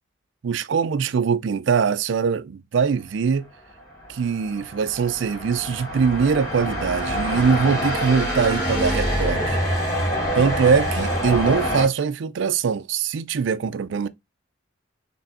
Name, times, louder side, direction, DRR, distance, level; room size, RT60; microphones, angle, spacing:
voice 1, 0.4-3.4 4.1-9.6 10.3-14.1, right 6 dB, 75° right, 0.4 m, -22 dB
sound 1, 3.9-11.9, equal, 15° left, 2.1 m, -26 dB
4.2 x 3.3 x 2.5 m
head